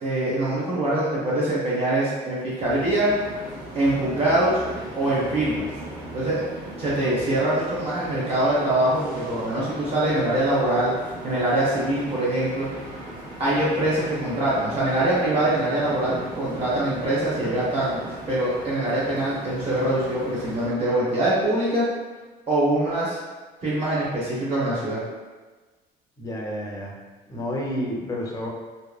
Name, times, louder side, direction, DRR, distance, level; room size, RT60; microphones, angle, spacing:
voice 1, 0.0-3.1 3.7-4.6 4.9-5.6 6.1-6.4 6.8-10.9 11.2-12.7 13.4-18.0 18.3-21.9 22.5-23.2 23.6-25.0, right 1 dB, 35° right, -8 dB, 0.8 m, -23 dB
sound 1, 2.6-20.7, right 1 dB, 75° right, 1.1 m, -38 dB
voice 2, 26.2-26.9 27.3-28.5, equal, 20° left, -2 dB, 0.6 m, -30 dB
2.8 x 2.3 x 2.3 m, 1.3 s
cardioid pair, 110°, 17 cm